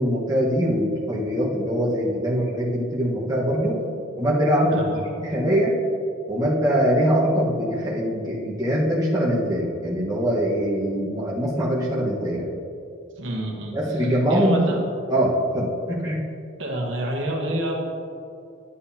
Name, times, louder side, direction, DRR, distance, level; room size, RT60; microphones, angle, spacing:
voice 1, 0.0-3.8 4.2-4.8 5.2-5.7 6.3-12.5 13.7-14.7 15.1-16.2, equal, 20° right, -6 dB, 1.4 m, -22 dB
voice 2, 4.7-5.0 13.2-14.8 16.6-17.8, right 1 dB, 75° right, -1 dB, 1.3 m, -29 dB
11.0 x 8.0 x 2.9 m, 2.5 s
head